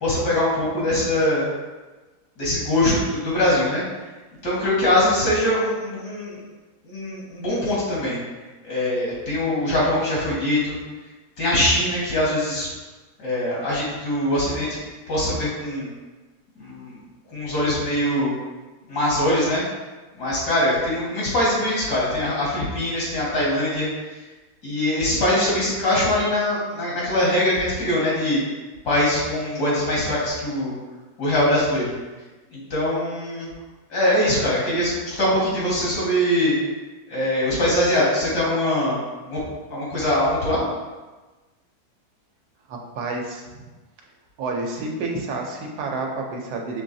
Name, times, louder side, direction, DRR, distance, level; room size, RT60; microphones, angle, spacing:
voice 1, 0.0-1.4 2.4-3.8 4.4-6.4 6.8-8.2 8.6-10.8 11.4-12.7 13.2-14.8 15.1-15.9 16.6-16.9 17.3-18.3 18.9-19.6 20.2-23.9 24.6-28.4 28.8-30.7 31.2-31.9 32.5-33.5 33.9-36.6 37.1-39.0 39.3-39.4 39.7-40.7, left 1 dB, 90° left, -6 dB, 2.3 m, -22 dB
voice 2, 42.7-43.6 44.4-46.8, right 3 dB, 80° right, 1 dB, 1.2 m, -29 dB
6.0 x 3.1 x 2.6 m, 1.2 s
omnidirectional pair, 1.7 m